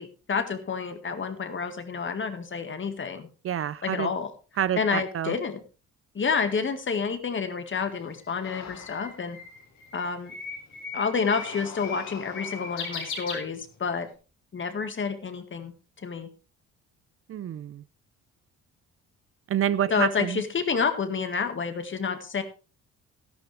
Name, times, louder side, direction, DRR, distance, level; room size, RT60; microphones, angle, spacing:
voice 1, 0.0-3.3 3.8-4.3 4.8-5.6 6.1-9.4 9.9-10.3 10.9-14.1 14.5-15.7 16.0-16.3 19.9-22.4, left 5 dB, 40° left, 1.9 m, -29 dB
voice 2, 3.4-4.1 4.6-5.4 17.3-17.8 19.5-20.4, right 10 dB, 45° right, 0.5 m, -28 dB
Bird, 7.8-14.0, left 4 dB, 80° left, 5.2 m, -39 dB
sound 1, 8.4-9.4 11.0-13.4, left 7 dB, 60° left, 1.7 m, -45 dB
13.0 x 11.5 x 3.4 m
cardioid pair, 90°, 30 cm